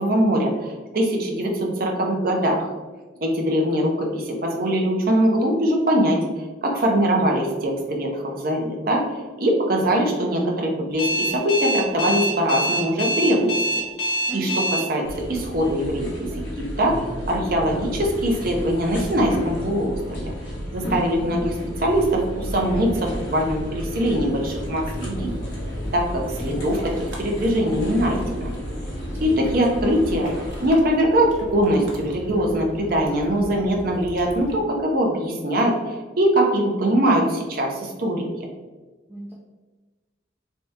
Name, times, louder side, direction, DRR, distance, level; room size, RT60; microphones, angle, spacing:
voice 1, 0.0-2.7 3.2-6.2 6.6-13.6 14.0-20.3 20.7-25.3 25.9-28.5 29.2-30.3 30.6-38.2, equal, 50° right, 0 dB, 0.7 m, -22 dB
Alarm, 11.0-14.8, equal, 55° left, 1.4 m, -24 dB
voice 2, 14.3-14.6 29.3-29.4 39.1-39.3, right 1 dB, 10° right, -5 dB, 0.5 m, -34 dB
sound 1, 15.0-30.7, equal, 75° left, 1.5 m, -32 dB
Ocean, 24.5-34.6, equal, 85° right, 0.8 m, -38 dB
3.5 x 3.3 x 2.8 m, 1.3 s
head